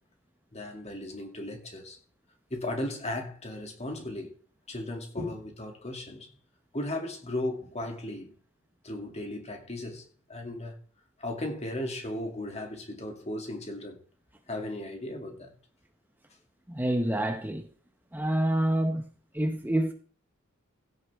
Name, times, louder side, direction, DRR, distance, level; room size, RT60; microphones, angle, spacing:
voice 1, 0.5-2.0 2.5-4.4 4.7-6.3 6.7-8.4 8.8-10.8 11.2-14.0 14.5-15.6, left 1 dB, 30° left, 2.4 m, -36 dB
voice 2, 16.7-17.7 18.1-19.0 19.3-19.9, right 1 dB, 10° right, 0.8 m, -27 dB
15.5 x 9.3 x 3.5 m
head